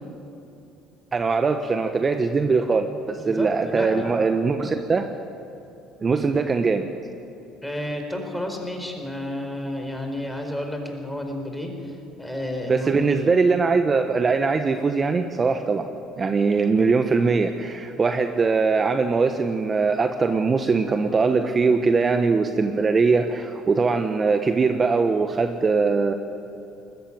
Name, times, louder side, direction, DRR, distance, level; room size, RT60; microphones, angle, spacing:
voice 1, 1.1-5.1 6.0-6.9 12.7-15.9 16.2-26.1, right 4 dB, 35° right, 7 dB, 1.1 m, -21 dB
voice 2, 3.2-4.2 7.6-11.7 12.2-13.3, left 1 dB, 5° left, 4 dB, 4.5 m, -31 dB
20.0 x 14.5 x 9.4 m, 2.8 s
supercardioid pair, 75°, 0 cm